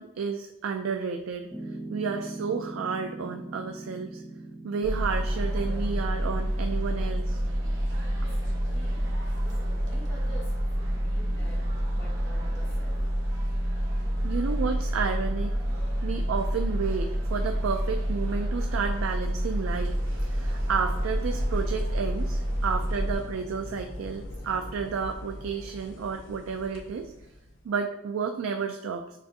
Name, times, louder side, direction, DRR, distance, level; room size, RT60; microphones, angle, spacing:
voice 1, 0.0-1.5 1.9-4.2 4.6-7.4 14.2-15.5 16.0-27.1 27.6-29.2, right 5 dB, 80° right, 4 dB, 0.3 m, -31 dB
Piano, 1.5-6.6, right 2 dB, 15° right, 0.7 m, -41 dB
sound 1, 4.8-23.1, equal, 65° right, 1.0 m, -28 dB
voice 2, 8.1-9.0 9.4-11.7 11.9-14.4, right 1 dB, 20° left, -8 dB, 1.0 m, -50 dB
sound 2, 19.6-27.7, left 1 dB, 65° left, 0.6 m, -41 dB
6.9 x 2.5 x 2.6 m, 0.93 s
head